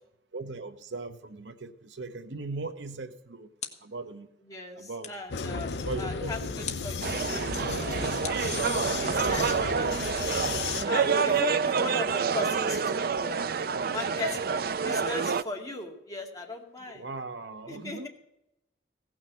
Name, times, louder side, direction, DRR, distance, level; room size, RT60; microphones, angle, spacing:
voice 1, 0.3-3.5 3.8-4.3 4.7-5.1 5.8-6.8 10.3-10.8 13.8-13.9 16.9-18.1, right 3 dB, 80° right, 9 dB, 1.0 m, -39 dB
sound 1, 3.1-4.1 5.0-5.4 6.6-7.0 8.2-9.1, left 8 dB, 40° left, 1.3 m, -42 dB
voice 2, 4.5-5.7 6.0-10.5 10.8-13.4 13.9-17.1 17.7-18.1, left 2 dB, 20° left, 0 dB, 2.2 m, -38 dB
Vehicle, 5.3-10.9, left 5 dB, 65° left, 0.6 m, -34 dB
sound 2, 7.0-15.4, right 5 dB, 55° right, 0.5 m, -28 dB
16.5 x 6.3 x 7.6 m, 0.86 s
head